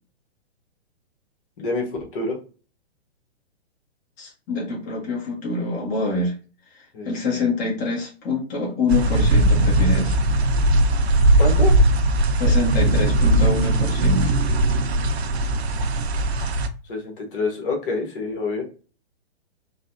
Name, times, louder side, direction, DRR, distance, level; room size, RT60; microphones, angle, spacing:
voice 1, 1.6-2.4 6.9-7.1 11.4-11.7 16.8-18.6, left 3 dB, 55° left, 1 dB, 1.3 m, -27 dB
voice 2, 4.2-6.3 6.7-10.2 12.3-14.3, left 3 dB, 25° left, -3 dB, 1.2 m, -25 dB
sound 1, 8.9-16.7, right 1 dB, 80° right, 0.6 m, -19 dB
3.9 x 2.3 x 2.6 m, 0.35 s
hypercardioid pair, 130°, 32 cm